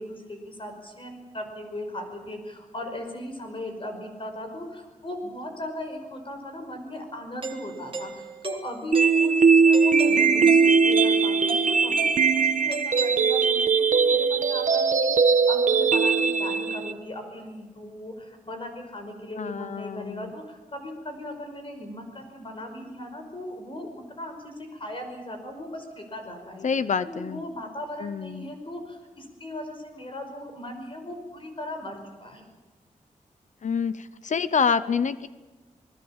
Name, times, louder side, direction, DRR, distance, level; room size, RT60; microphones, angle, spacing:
voice 1, 0.0-26.7 27.1-32.5, left 1 dB, 40° left, 5 dB, 5.4 m, -38 dB
Doorbell, 7.4-13.7, right 4 dB, 40° right, 1.9 m, -37 dB
sound 1, 8.9-16.9, right 5 dB, 70° right, 1.4 m, -20 dB
voice 2, 19.3-20.3 26.6-27.4 28.0-28.5 33.6-35.3, left 6 dB, 65° left, 14 dB, 0.8 m, -27 dB
28.0 x 20.5 x 7.3 m, 1.2 s
wide cardioid pair, 125°, 14 cm